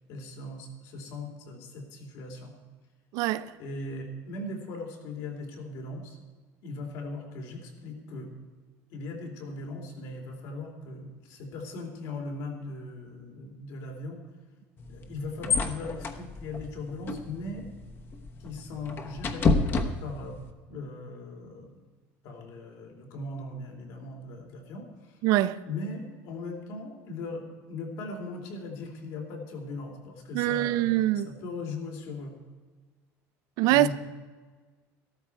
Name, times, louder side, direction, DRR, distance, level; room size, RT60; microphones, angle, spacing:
voice 1, 0.1-2.5 3.6-6.2 6.6-8.3 8.9-14.2 14.9-17.7 18.4-19.5 20.0-20.4 20.7-21.8 22.2-25.2 25.7-32.3 33.7-33.9, left 2 dB, 65° left, 3.0 m, -39 dB
voice 2, 3.1-3.5 25.2-25.6 30.3-31.3 33.6-33.9, right 14 dB, 65° right, 0.5 m, -24 dB
sound 1, 14.8-20.5, left 3 dB, 35° left, 1.0 m, -31 dB
13.5 x 13.0 x 4.7 m
cardioid pair, 145°, 7 cm